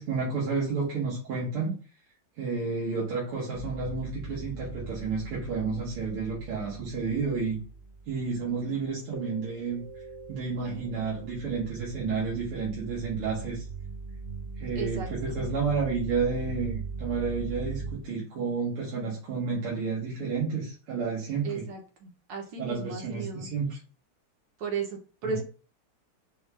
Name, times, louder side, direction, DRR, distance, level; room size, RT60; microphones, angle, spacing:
voice 1, 0.0-1.8 2.4-7.6 8.1-9.8 10.3-13.7 14.6-21.7 22.6-23.8 25.2-25.4, right 4 dB, 80° right, -5 dB, 2.0 m, -31 dB
sound 1, 3.5-8.7 9.1-17.9, right 4 dB, 35° right, 0.5 m, -40 dB
voice 2, 8.4-8.8 14.8-15.1 21.4-23.5 24.6-25.4, right 5 dB, 65° right, 3 dB, 1.5 m, -35 dB
5.0 x 2.4 x 3.2 m, 0.37 s
omnidirectional pair, 2.4 m